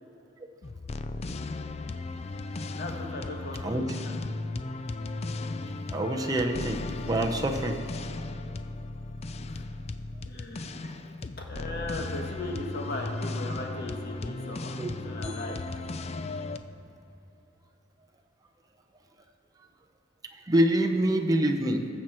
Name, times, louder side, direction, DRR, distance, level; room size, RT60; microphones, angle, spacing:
sound 1, 0.6-16.6, left 2 dB, 35° left, 0.4 m, -36 dB
voice 1, 2.8-4.1 9.5-9.6 10.2-10.8 11.4-14.7 15.0-15.6, left 2 dB, 55° left, 1 dB, 1.6 m, -38 dB
voice 2, 5.9-6.8 7.1-7.8 10.8-11.0 14.8-14.9 20.5-21.8, right 1 dB, 20° right, 2 dB, 0.7 m, -25 dB
20.0 x 7.5 x 4.5 m, 2.9 s
head